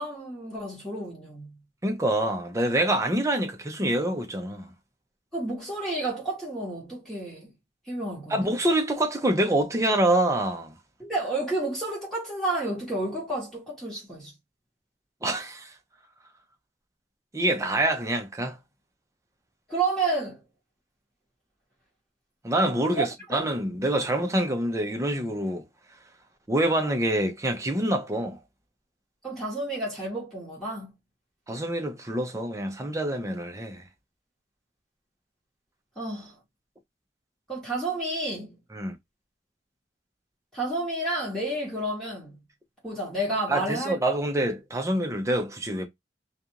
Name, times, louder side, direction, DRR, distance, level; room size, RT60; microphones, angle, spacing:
voice 1, 0.0-1.6 5.3-7.5 7.9-8.5 11.0-14.3 19.7-20.4 22.9-23.4 29.2-30.9 36.0-36.4 37.5-38.6 40.5-42.4 42.8-44.0, right 2 dB, ahead, 1.2 m, -30 dB
voice 2, 1.8-4.7 8.3-10.7 15.2-15.7 17.3-18.6 22.4-25.6 26.5-28.4 31.5-33.8 38.7-38.9 43.5-45.9, right 1 dB, 15° right, 0.6 m, -26 dB
2.4 x 2.4 x 2.8 m
head